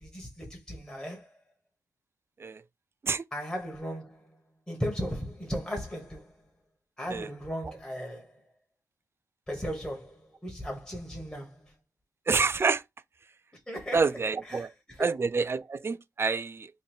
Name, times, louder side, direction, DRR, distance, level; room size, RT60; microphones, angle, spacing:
voice 1, 0.0-1.3 3.3-4.4 4.7-6.3 7.0-8.4 9.5-11.7 13.7-14.0 14.5-15.2, equal, 10° left, 1.2 m, -36 dB
voice 2, 12.3-12.8 13.9-14.7 15.0-16.7, right 4 dB, 35° right, 0.4 m, -27 dB
3.1 x 2.7 x 4.2 m
cardioid pair, 80°, 7 cm